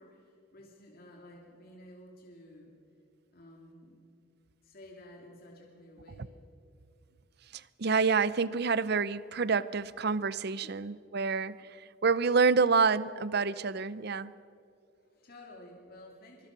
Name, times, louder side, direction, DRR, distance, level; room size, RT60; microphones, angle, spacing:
voice 1, 0.0-2.7 3.3-4.0 4.6-6.4 10.4-10.7 15.0-16.5, left 1 dB, 50° left, -1 dB, 2.8 m, -53 dB
voice 2, 7.5-14.3, right 5 dB, 55° right, 17 dB, 0.6 m, -28 dB
24.0 x 23.5 x 6.1 m, 2.5 s
head